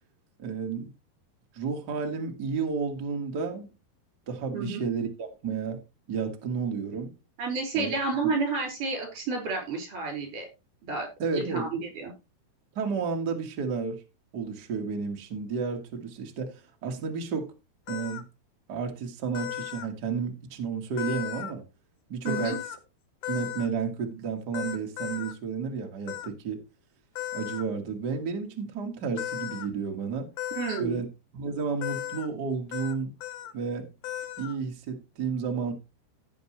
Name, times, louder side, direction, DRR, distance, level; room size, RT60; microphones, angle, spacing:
voice 1, 0.4-0.9 1.5-3.7 4.3-5.8 6.1-7.1 7.7-7.9 11.2-11.7 12.7-14.0 14.3-17.5 17.9-18.2 18.7-21.6 22.1-22.5 23.3-26.6 27.3-30.3 30.8-31.0 31.3-33.1 33.5-33.9 34.4-35.7, right 5 dB, 90° right, 0.9 m, -32 dB
voice 2, 7.4-10.5 10.8-11.1 11.3-12.1 22.2-22.6 30.5-31.0, right 4 dB, 50° right, 6.0 m, -30 dB
sound 1, 17.9-18.2 19.3-19.9 21.0-21.5 22.2-22.8 23.2-23.7 24.5-25.3 26.1-26.3 27.1-27.6 29.2-29.7 30.4-30.8 31.8-32.3 32.7-32.9 33.2-33.5 34.0-34.5, left 13 dB, 90° left, 1.6 m, -35 dB
15.5 x 7.2 x 3.1 m
omnidirectional pair, 4.9 m